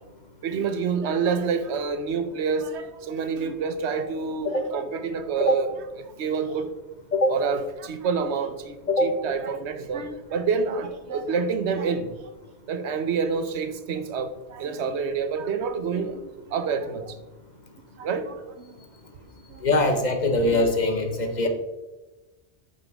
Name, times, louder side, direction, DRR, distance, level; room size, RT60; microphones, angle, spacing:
voice 1, 0.4-5.7 6.2-6.7 7.3-8.7 9.0-12.1 12.7-17.1 18.0-18.4 19.5-19.6, right 5 dB, 85° right, 9 dB, 1.0 m, -27 dB
voice 2, 19.6-21.5, left 2 dB, 45° left, 5 dB, 1.0 m, -22 dB
8.7 x 5.6 x 3.5 m, 1.1 s
omnidirectional pair, 1.1 m